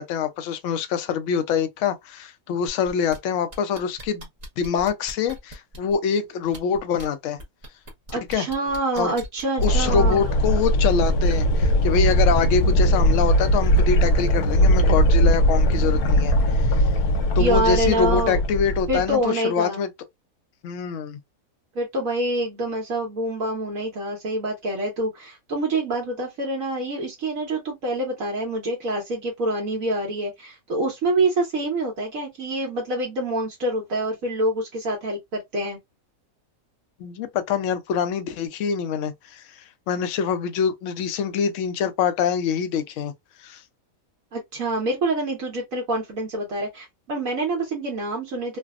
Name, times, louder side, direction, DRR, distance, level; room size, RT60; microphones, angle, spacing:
voice 1, 0.0-4.3 4.6-7.4 8.3-8.5 9.0-9.1 9.6-16.9 17.4-19.9 20.6-21.2 37.0-43.1 43.4-43.6, left 7 dB, 65° left, 0.8 m, -25 dB
sound 1, 2.7-3.2 3.5-5.9 6.4-7.1 7.4-9.8 10.9-11.0, right 1 dB, 35° right, 0.7 m, -40 dB
voice 2, 8.1-10.3 17.4-18.4 18.9-19.8 21.7-35.8 44.3-48.6, right 1 dB, 65° right, 1.3 m, -26 dB
sound 2, 9.6-19.1, equal, 90° left, 1.2 m, -19 dB
3.3 x 2.0 x 2.3 m
omnidirectional pair, 1.5 m